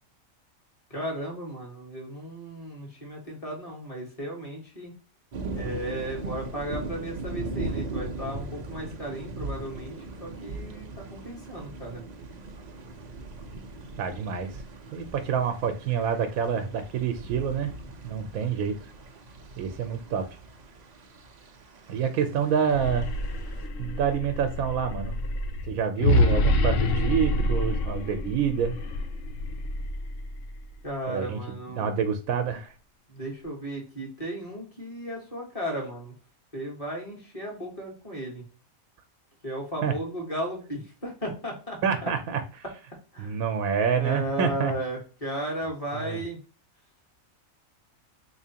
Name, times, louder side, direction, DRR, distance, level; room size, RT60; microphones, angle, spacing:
voice 1, 0.9-4.9 5.5-9.9 10.2-12.0 30.8-32.0 33.1-36.1 36.5-38.4 39.4-42.1 43.1-43.4 43.9-46.4, equal, 25° left, -2 dB, 1.4 m, -35 dB
sound 1, 5.3-23.7, right 2 dB, 50° right, 0.5 m, -39 dB
voice 2, 14.0-14.5 14.9-17.7 18.0-18.9 19.6-20.2 21.9-23.1 23.8-25.2 25.7-28.7 31.1-32.7 39.8-39.9 41.8-42.4 43.2-44.7 45.9-46.2, right 7 dB, 90° right, 7 dB, 1.1 m, -27 dB
sound 2, 22.6-30.7, left 1 dB, 70° left, 0.9 m, -27 dB
3.9 x 3.0 x 2.8 m, 0.37 s
omnidirectional pair, 1.5 m